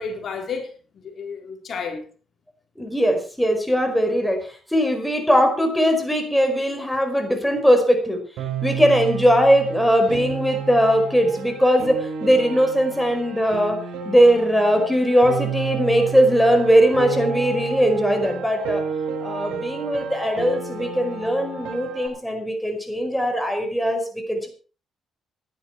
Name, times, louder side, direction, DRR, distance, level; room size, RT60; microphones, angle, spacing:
voice 1, 0.0-2.1, left 5 dB, 55° left, 4.0 m, -32 dB
voice 2, 2.8-8.2 8.6-18.8 19.2-24.5, equal, 5° left, 5.0 m, -20 dB
Piano, 8.4-22.1, right 6 dB, 90° right, 4.7 m, -31 dB
18.0 x 11.0 x 4.6 m
cardioid pair, 90°, 0 cm